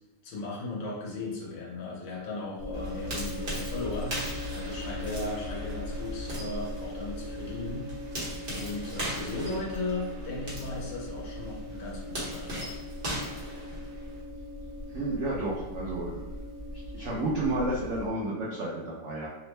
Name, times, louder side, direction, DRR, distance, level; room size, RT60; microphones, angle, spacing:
voice 1, 0.2-4.1 4.5-7.8 8.5-12.7, left 2 dB, 85° left, -3 dB, 1.6 m, -36 dB
sound 1, 2.6-18.1, left 1 dB, 40° left, 1.1 m, -39 dB
sound 2, 2.7-14.2, right 1 dB, 40° right, 1.0 m, -40 dB
voice 2, 14.9-16.3 16.9-19.3, right 2 dB, 70° right, -6 dB, 0.6 m, -31 dB
3.6 x 2.1 x 3.1 m, 1.1 s
omnidirectional pair, 2.0 m